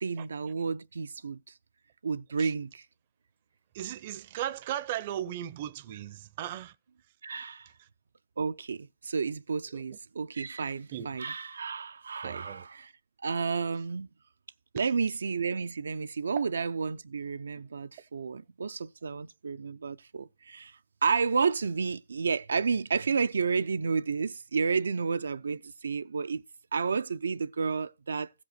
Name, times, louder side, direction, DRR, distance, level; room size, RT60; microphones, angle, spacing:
voice 1, 0.0-1.5 2.0-2.9 7.2-7.7 8.4-12.9 13.2-14.1 14.7-26.4 26.7-28.3, right 5 dB, 80° right, 0.5 m, -31 dB
voice 2, 3.7-6.7 9.7-9.8 10.9-11.1 12.2-12.7 16.4-16.5, right 11 dB, 30° right, 0.6 m, -36 dB
14.5 x 5.2 x 6.6 m
hypercardioid pair, 160°, 0 cm